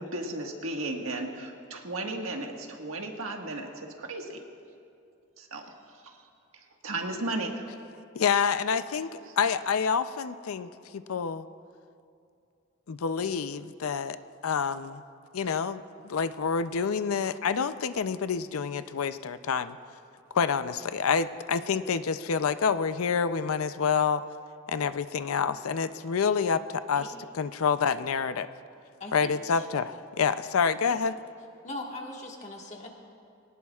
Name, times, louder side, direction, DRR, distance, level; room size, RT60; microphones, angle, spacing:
voice 1, 0.0-4.4 5.4-6.2 6.5-7.7 9.3-9.4, right 2 dB, 80° right, 1 dB, 1.6 m, -35 dB
voice 2, 8.1-11.5 12.9-14.2 14.4-15.0 15.3-19.8 20.3-24.2 24.7-28.5 29.1-31.2, left 6 dB, 90° left, 12 dB, 0.5 m, -28 dB
voice 3, 29.0-29.6 31.6-32.9, left 1 dB, 35° left, 0 dB, 1.6 m, -40 dB
22.5 x 18.5 x 2.4 m, 2.5 s
head